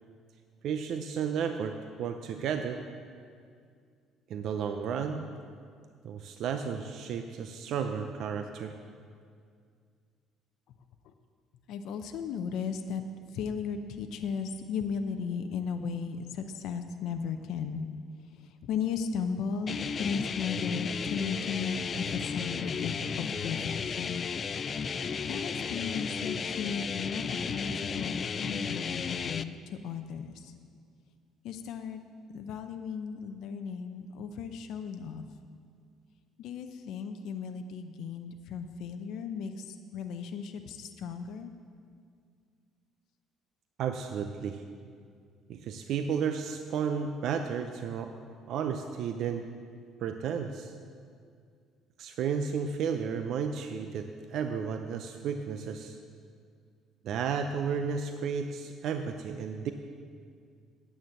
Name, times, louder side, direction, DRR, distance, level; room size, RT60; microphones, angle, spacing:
voice 1, 0.6-2.9 4.3-5.3 6.0-8.7 43.8-44.6 45.5-48.2 48.5-49.5 50.0-50.7 52.0-56.0 57.0-59.7, right 6 dB, 55° right, 7 dB, 0.5 m, -33 dB
voice 2, 11.7-13.0 13.3-17.9 18.4-24.2 25.3-30.5 31.4-32.0 32.3-35.2 36.4-41.5, left 6 dB, 65° left, 6 dB, 0.6 m, -36 dB
sound 1, 19.7-29.4, left 6 dB, 30° left, 0.3 m, -34 dB
9.3 x 8.9 x 7.5 m, 2.2 s
cardioid pair, 150°, 0 cm